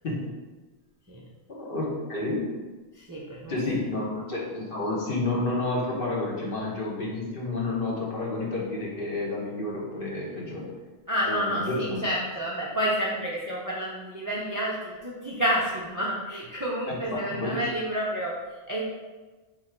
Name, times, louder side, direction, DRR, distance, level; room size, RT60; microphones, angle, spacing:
voice 1, 1.5-2.5 3.5-10.7 11.3-12.0 16.9-17.6, left 2 dB, 50° left, -4 dB, 1.1 m, -30 dB
voice 2, 2.9-3.6 11.1-18.9, equal, 30° right, -5 dB, 0.4 m, -29 dB
3.8 x 2.9 x 4.4 m, 1.3 s
omnidirectional pair, 1.3 m